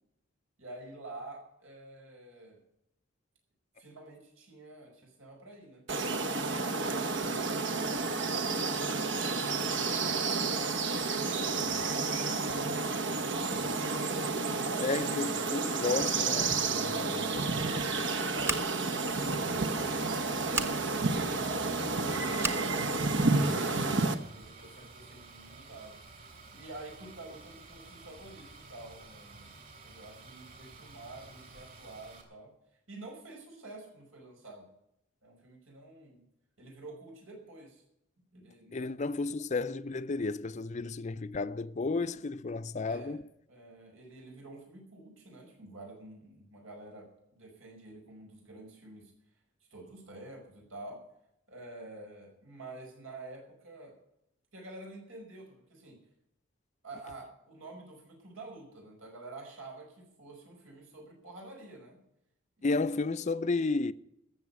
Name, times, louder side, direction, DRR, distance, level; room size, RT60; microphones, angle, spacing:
voice 1, 0.6-2.6 3.8-5.9 6.5-10.9 12.7-13.8 14.5-15.0 16.9-20.4 20.8-26.0 26.5-32.5 32.9-34.7 35.2-36.2 36.6-37.8 38.3-39.1 42.8-43.2 43.5-49.1 49.7-51.0 51.5-53.9 54.5-56.0 56.8-62.0 62.6-62.9, right 2 dB, 90° right, 5.3 m, -49 dB
sound 1, 5.9-24.1, right 3 dB, 60° right, 1.0 m, -30 dB
voice 2, 14.8-17.2 38.7-43.2 62.6-63.9, left 3 dB, 35° left, 0.5 m, -32 dB
Scissors, 18.4-18.9 20.5-20.7 22.4-22.7, right 2 dB, 15° right, 0.9 m, -33 dB
sound 2, 19.5-32.2, right 3 dB, 45° right, 3.4 m, -51 dB
14.0 x 7.3 x 9.7 m
head